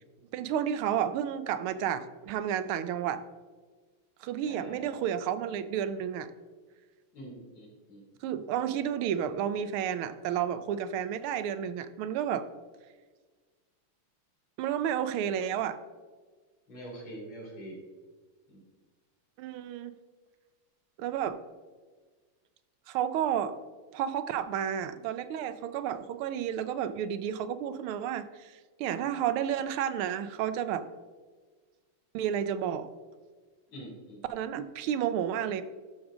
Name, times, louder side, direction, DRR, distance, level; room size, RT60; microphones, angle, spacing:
voice 1, 0.3-3.2 4.2-6.3 8.2-12.4 14.6-15.8 19.4-19.9 21.0-21.4 22.9-23.5 23.9-30.8 32.1-32.9 34.3-35.6, right 9 dB, 80° right, 12 dB, 1.5 m, -31 dB
voice 2, 4.5-4.9 7.1-8.0 16.7-17.8 18.5-18.6 33.7-34.2, right 1 dB, 85° left, -2 dB, 3.6 m, -44 dB
12.5 x 6.0 x 3.6 m, 1.4 s
omnidirectional pair, 2.4 m